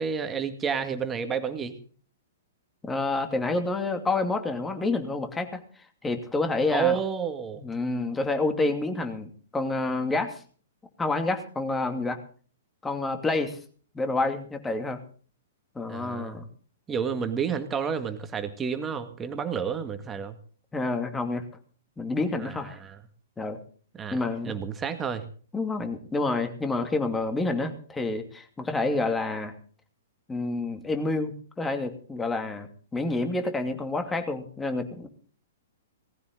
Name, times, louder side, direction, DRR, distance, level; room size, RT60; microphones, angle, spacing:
voice 1, 0.0-1.8 6.7-7.6 15.9-16.4 16.9-20.4 22.4-23.0 24.0-24.2 24.4-25.3, right 7 dB, 20° right, 8 dB, 2.0 m, -30 dB
voice 2, 2.8-5.6 6.0-7.0 7.6-10.4 11.0-12.2 12.8-13.6 13.9-15.0 15.7-16.5 20.7-21.4 22.0-22.7 23.4-23.6 24.1-24.5 25.5-29.5 30.3-35.1, left 3 dB, 10° left, 7 dB, 2.5 m, -28 dB
19.0 x 15.0 x 4.0 m, 0.43 s
figure-of-eight pair, 115°, 0 cm